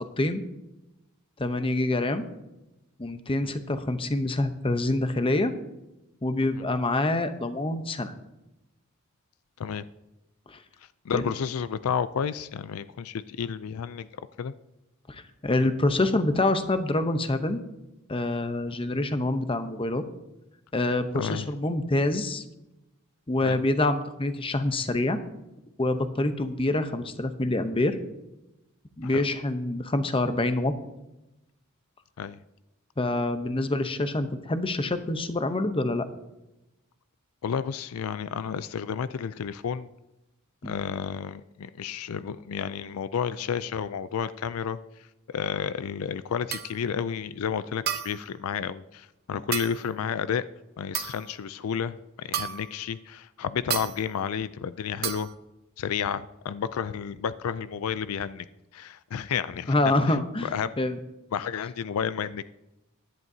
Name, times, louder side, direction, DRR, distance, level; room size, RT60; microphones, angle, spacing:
voice 1, 1.4-2.3 3.0-5.5 6.2-8.1 10.5-10.6 11.1-11.2 15.1-17.6 18.1-20.0 20.7-22.4 23.3-25.2 25.8-28.0 29.0-30.7 33.0-36.1 40.6-40.7 49.3-49.4 59.7-60.5 60.8-61.0, left 2 dB, 25° left, 9 dB, 0.8 m, -26 dB
voice 2, 11.1-14.1 14.4-14.5 21.1-21.5 23.4-23.6 29.1-29.2 32.2-32.4 37.4-39.9 40.6-44.8 45.3-50.4 50.8-55.3 55.8-58.5 58.7-59.7 60.1-60.7 61.3-62.5, left 7 dB, 75° left, 15 dB, 0.4 m, -31 dB
sound 1, 46.5-46.8 47.9-48.3 49.5-49.8 50.9-51.3 52.3-52.8 53.7-54.0 55.0-55.3, right 10 dB, 45° right, 0.8 m, -32 dB
16.0 x 11.0 x 2.7 m, 0.95 s
head